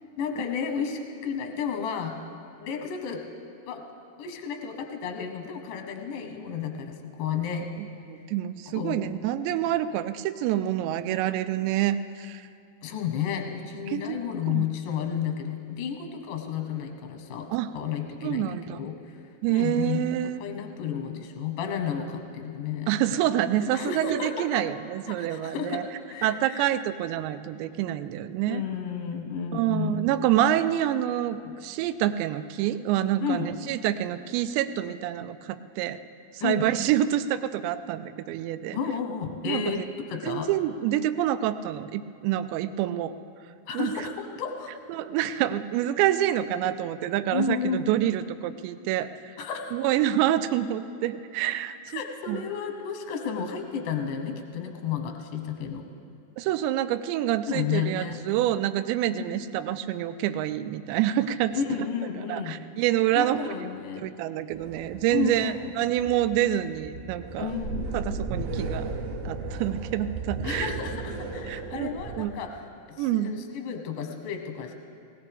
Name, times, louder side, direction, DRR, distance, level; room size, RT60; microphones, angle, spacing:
voice 1, 0.2-2.2 2.6-3.2 3.7-3.8 4.2-7.7 8.7-9.0 12.8-17.5 17.7-19.2 19.5-22.9 23.6-24.6 25.1-25.8 26.1-26.7 28.5-30.0 31.4-31.5 33.2-33.5 36.4-36.7 38.7-39.8 40.1-40.5 43.7-44.7 47.3-47.9 49.4-49.6 51.9-55.9 57.5-58.2 59.1-59.4 61.5-62.6 63.1-64.1 65.1-65.7 67.4-67.9 70.4-72.6 72.9-74.7, left 7 dB, 70° left, 3 dB, 2.0 m, -32 dB
voice 2, 8.1-12.4 13.9-14.2 14.5-14.6 17.5-17.7 18.2-18.8 19.4-20.4 22.9-25.9 26.2-28.6 29.5-36.0 36.4-38.8 39.5-39.8 40.2-43.1 43.7-43.9 44.9-49.4 49.7-52.0 52.3-52.4 56.4-61.5 62.3-63.5 64.0-67.5 67.9-68.9 69.3-70.7 71.5-71.9 72.1-72.3 73.0-73.3, right 12 dB, 85° right, 12 dB, 2.8 m, -27 dB
sound 1, 64.5-72.2, right 3 dB, 65° right, 2.2 m, -35 dB
19.5 x 19.0 x 3.5 m, 2.4 s
omnidirectional pair, 5.1 m